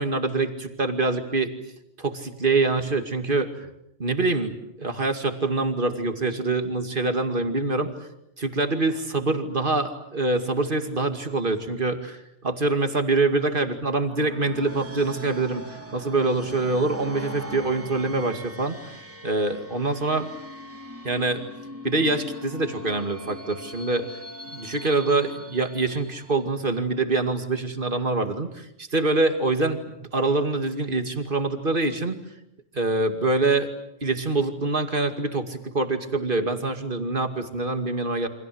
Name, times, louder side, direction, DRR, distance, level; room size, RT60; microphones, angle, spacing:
voice 1, 0.0-1.5 2.0-3.5 4.0-7.9 8.4-18.8 19.2-20.3 21.0-21.4 21.8-24.1 24.5-32.2 32.7-33.7 34.0-38.3, right 3 dB, 40° right, 7 dB, 2.5 m, -25 dB
sound 1, 14.0-26.5, left 1 dB, 10° right, 2.8 m, -41 dB
29.0 x 25.5 x 7.9 m, 0.81 s
omnidirectional pair, 1.3 m